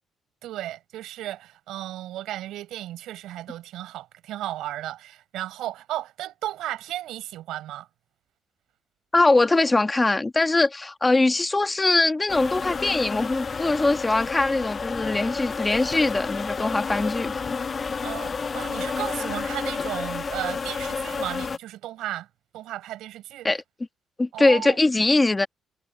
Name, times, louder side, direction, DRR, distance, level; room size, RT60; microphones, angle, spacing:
voice 1, 0.4-7.9 18.0-22.3 22.5-23.5 24.3-24.8, right 14 dB, 90° right, 4.7 m, -34 dB
voice 2, 9.1-17.6 23.4-23.6 24.2-25.5, left 2 dB, 20° left, 1.5 m, -22 dB
sound 1, 12.3-21.6, left 5 dB, 35° left, 0.5 m, -30 dB
cardioid pair, 90°, 0 cm